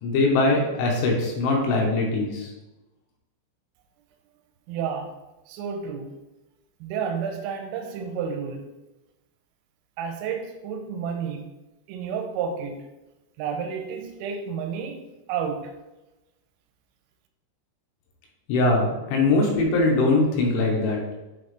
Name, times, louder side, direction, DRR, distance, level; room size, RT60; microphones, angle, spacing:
voice 1, 0.0-2.5 18.5-21.0, left 2 dB, 75° left, 3.3 m, -22 dB
voice 2, 4.7-5.1 5.5-6.1 6.8-8.7 10.0-11.5 11.9-12.8 13.4-15.0 15.3-15.7, right 6 dB, 85° right, 3.3 m, -31 dB
8.5 x 4.3 x 3.2 m
omnidirectional pair, 5.9 m